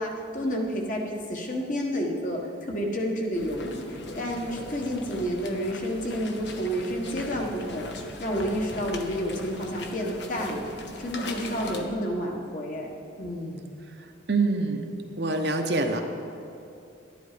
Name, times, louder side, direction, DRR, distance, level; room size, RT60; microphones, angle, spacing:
voice 1, 0.0-13.6, equal, 40° left, 0 dB, 1.5 m, -30 dB
sound 1, 3.3-11.8, left 2 dB, 65° left, 1.0 m, -39 dB
voice 2, 14.3-14.8 15.2-16.0, right 3 dB, 55° right, 4 dB, 1.0 m, -25 dB
11.5 x 10.5 x 5.1 m, 2.7 s
head